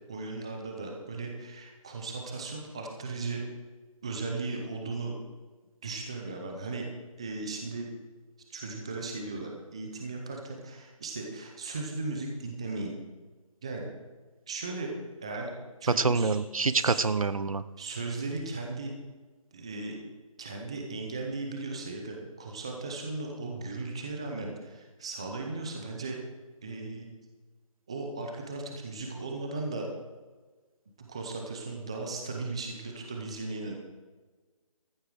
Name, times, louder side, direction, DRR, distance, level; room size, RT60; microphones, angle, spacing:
voice 1, 0.1-3.4 4.0-5.2 5.8-6.9 7.2-7.9 8.5-12.9 13.6-13.9 14.5-14.9 15.2-15.5 15.8-16.4 16.7-17.1 17.8-18.9 19.5-20.0 20.4-26.2 26.6-27.1 27.9-29.9 31.0-33.7, right 3 dB, 10° right, 1 dB, 0.6 m, -37 dB
voice 2, 16.0-17.6, right 4 dB, 70° right, 15 dB, 0.9 m, -26 dB
14.0 x 8.4 x 6.1 m, 1.3 s
figure-of-eight pair, 175°, 18 cm